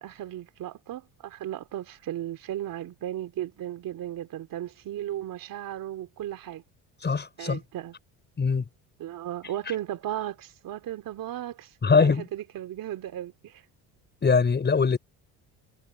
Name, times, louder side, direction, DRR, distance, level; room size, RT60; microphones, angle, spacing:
voice 1, 0.0-6.6 7.4-7.9 9.0-13.6, right 12 dB, 60° right, 3.0 m, -35 dB
voice 2, 7.0-7.6 8.4-8.7 11.8-12.2 14.2-15.0, left 5 dB, 25° left, 5.8 m, -22 dB
cardioid pair, 110°, 39 cm